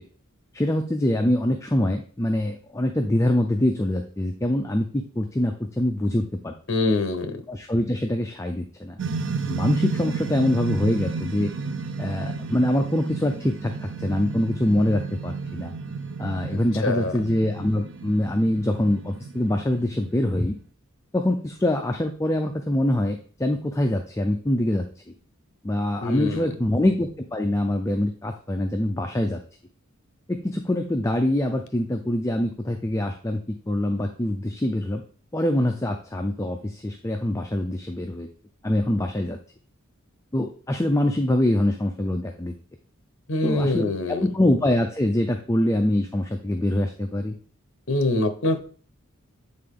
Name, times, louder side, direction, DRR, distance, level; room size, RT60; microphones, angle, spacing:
voice 1, 0.5-6.5 7.5-9.0 9.5-11.5 12.0-15.7 16.2-20.5 21.1-24.9 25.6-29.4 30.3-33.4 33.7-35.0 35.3-38.3 38.6-39.4 40.3-42.5 43.4-47.4, left 1 dB, 15° left, 4 dB, 0.4 m, -24 dB
voice 2, 6.7-7.4 16.5-17.1 26.0-26.5 43.3-44.2 47.9-48.6, left 2 dB, 60° left, 8 dB, 0.8 m, -24 dB
sound 1, 9.0-20.4, right 4 dB, 60° right, 0.6 m, -32 dB
8.6 x 3.8 x 3.7 m, 0.43 s
head